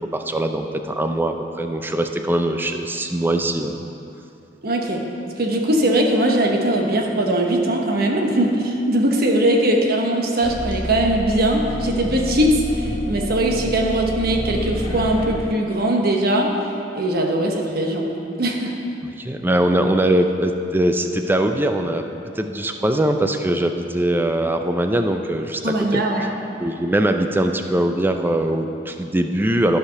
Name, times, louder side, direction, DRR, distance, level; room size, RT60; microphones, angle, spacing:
voice 1, 0.1-3.8 19.2-22.0 22.4-26.0 26.6-29.8, right 1 dB, 10° right, 6 dB, 0.5 m, -21 dB
voice 2, 4.6-16.6 16.9-18.8 25.6-26.3, right 1 dB, 55° right, 1 dB, 1.1 m, -20 dB
sound 1, 10.4-15.4, equal, 25° left, 1.6 m, -28 dB
12.5 x 5.0 x 5.7 m, 2.7 s
head